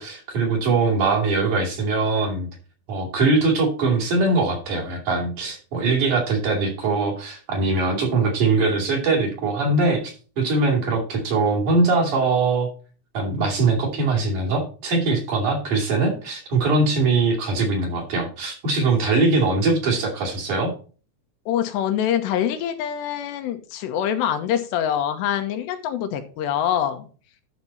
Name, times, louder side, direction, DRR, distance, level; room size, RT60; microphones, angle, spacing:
voice 1, 0.0-2.5 2.9-12.7 13.1-20.7, right 3 dB, 50° right, -1 dB, 3.9 m, -22 dB
voice 2, 21.5-27.1, left 10 dB, 80° left, 7 dB, 3.2 m, -25 dB
12.0 x 6.0 x 4.1 m, 0.38 s
omnidirectional pair, 4.9 m